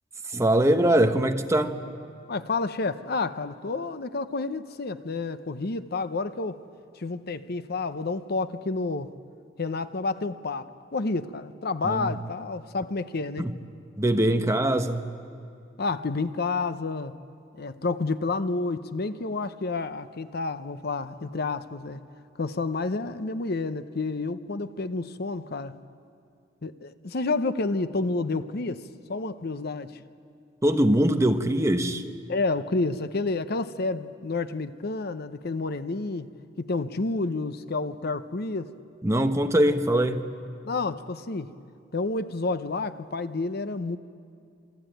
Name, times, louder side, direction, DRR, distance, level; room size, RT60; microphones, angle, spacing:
voice 1, 0.3-1.7 11.8-12.1 13.4-13.5 14.0-15.1 30.6-32.0 39.0-40.3, right 1 dB, 15° right, 1.1 m, -22 dB
voice 2, 2.3-6.6 7.0-9.1 9.6-13.5 15.8-17.2 17.6-22.0 22.4-25.8 26.6-28.8 29.1-30.0 32.3-36.3 36.6-38.7 40.6-41.5 41.9-44.0, left 3 dB, 55° left, 0.8 m, -30 dB
27.5 x 23.5 x 9.1 m
head